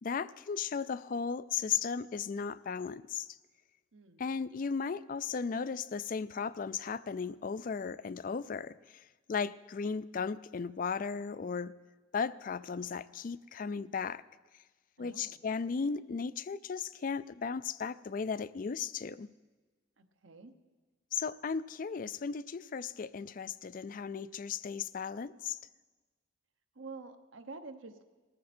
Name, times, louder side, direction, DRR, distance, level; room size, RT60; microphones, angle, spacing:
voice 1, 0.0-3.4 4.2-11.8 12.1-14.2 15.0-19.3 21.1-25.6, left 5 dB, 45° left, 17 dB, 0.4 m, -36 dB
voice 2, 3.9-4.3 15.0-15.4 20.0-20.5 26.7-28.0, right 3 dB, 75° right, 8 dB, 1.1 m, -48 dB
20.0 x 14.5 x 4.4 m, 1.3 s
head